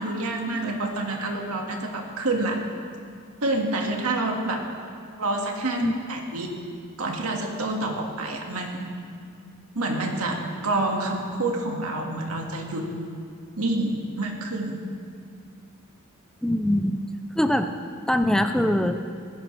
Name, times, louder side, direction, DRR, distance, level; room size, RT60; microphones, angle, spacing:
voice 1, 0.0-2.7 3.4-4.6 5.2-6.5 7.0-9.0 9.8-12.9 13.6-14.9, right 2 dB, 85° right, 1 dB, 1.9 m, -28 dB
voice 2, 16.4-17.0 17.4-17.7 18.1-19.0, left 1 dB, 5° left, 7 dB, 0.5 m, -22 dB
19.0 x 16.5 x 3.4 m, 2.3 s
head